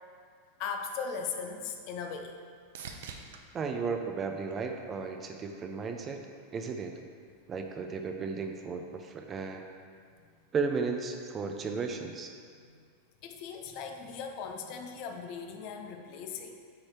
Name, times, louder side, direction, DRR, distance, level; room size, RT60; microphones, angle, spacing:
voice 1, 0.6-2.4 13.2-16.6, left 6 dB, 45° left, 4 dB, 0.5 m, -38 dB
sound 1, 1.7-5.2 5.7-6.4 14.2-14.3, right 5 dB, 80° right, 0.5 m, -50 dB
voice 2, 3.5-6.2 6.5-6.9 7.5-9.6 10.5-12.3, right 5 dB, 20° right, 4 dB, 0.3 m, -34 dB
4.9 x 4.5 x 4.2 m, 2.1 s
supercardioid pair, 155°, 0 cm